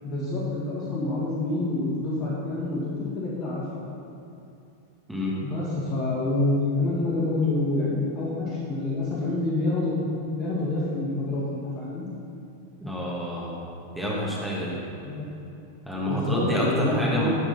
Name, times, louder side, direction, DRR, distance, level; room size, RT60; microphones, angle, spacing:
voice 1, 0.0-3.8 5.4-10.0 10.3-12.1 15.0-15.3 16.1-17.3, left 2 dB, 40° left, -7 dB, 2.4 m, -27 dB
voice 2, 12.8-13.5 13.9-14.8 15.8-17.3, equal, 5° right, -6 dB, 1.7 m, -28 dB
11.5 x 4.7 x 5.5 m, 2.7 s
figure-of-eight pair, 90°, 0 cm